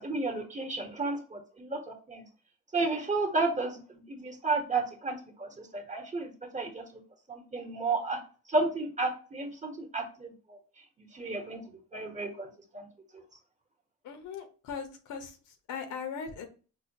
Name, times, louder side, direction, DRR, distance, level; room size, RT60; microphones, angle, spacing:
voice 1, 0.0-2.2 2.7-6.8 7.3-8.2 8.5-10.6 11.1-11.6 11.9-12.9, right 3 dB, 25° right, 3 dB, 1.0 m, -32 dB
voice 2, 14.0-16.5, left 6 dB, 80° left, 6 dB, 0.8 m, -39 dB
4.8 x 2.2 x 2.7 m, 0.36 s
cardioid pair, 90°, 30 cm